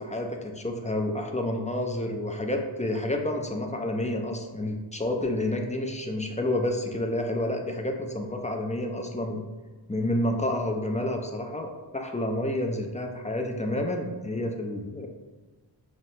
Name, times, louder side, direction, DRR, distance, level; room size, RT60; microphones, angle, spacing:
voice 1, 0.0-9.4 9.9-15.1, left 1 dB, 15° left, 2 dB, 0.4 m, -29 dB
5.7 x 2.1 x 2.7 m, 1.3 s
wide cardioid pair, 55°, 46 cm